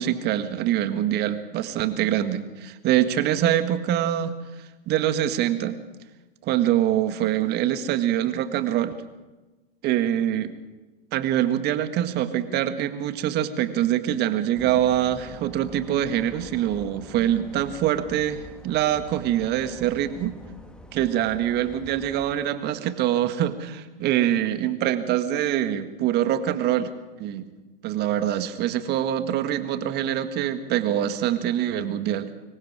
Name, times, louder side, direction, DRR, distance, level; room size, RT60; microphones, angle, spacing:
voice 1, 0.0-4.3 4.9-5.8 6.4-8.9 9.8-10.5 11.1-20.3 20.9-26.9 27.2-27.5 27.8-32.3, right 11 dB, 35° right, 11 dB, 1.7 m, -24 dB
sound 1, 14.5-22.4, left 1 dB, 5° left, 2.2 m, -45 dB
26.0 x 22.0 x 4.9 m, 1.2 s
figure-of-eight pair, 105°, 30 cm